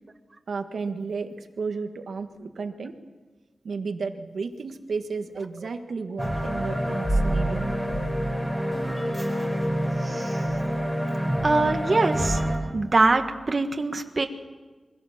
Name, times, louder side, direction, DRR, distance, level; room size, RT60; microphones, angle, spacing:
voice 1, 0.5-2.9 3.6-7.7, right 4 dB, 85° right, 6 dB, 1.6 m, -33 dB
sound 1, 6.2-12.5, equal, 10° left, 5.8 m, -26 dB
voice 2, 10.0-10.4 11.4-12.4 12.7-14.3, right 3 dB, 40° right, 5 dB, 1.5 m, -23 dB
23.5 x 16.5 x 7.4 m, 1.3 s
wide cardioid pair, 95°, 0 cm